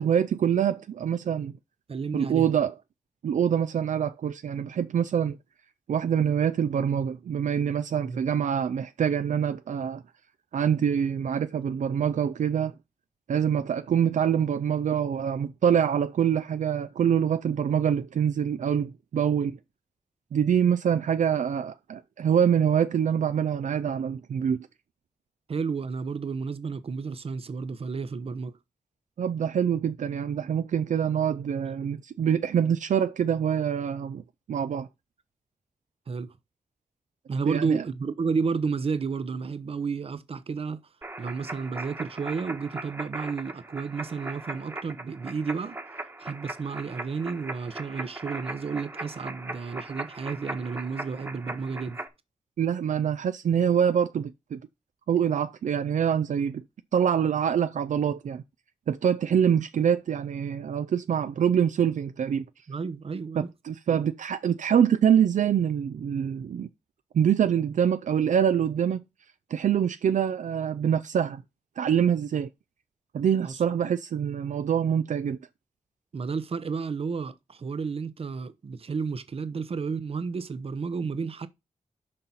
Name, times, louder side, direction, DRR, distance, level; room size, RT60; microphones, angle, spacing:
voice 1, 0.0-1.5 2.1-2.7 3.2-5.4 5.9-10.0 10.5-12.7 13.3-19.6 20.3-24.7 29.2-34.2 34.5-34.9 37.5-37.8 52.6-54.6 55.1-56.6 56.9-58.4 58.9-62.5 63.4-66.7 67.1-69.0 69.5-71.4 71.8-72.5 73.1-75.4, right 8 dB, 70° right, 0.5 m, -25 dB
voice 2, 1.9-2.5 8.0-8.2 25.5-28.5 36.1-36.3 37.3-40.8 41.2-45.8 46.2-52.0 62.7-63.5 63.9-64.0 73.4-73.5 76.1-81.5, right 5 dB, 50° right, 0.8 m, -31 dB
sound 1, 41.0-52.1, right 2 dB, 20° right, 1.2 m, -39 dB
6.6 x 5.8 x 5.5 m
wide cardioid pair, 145°, 13 cm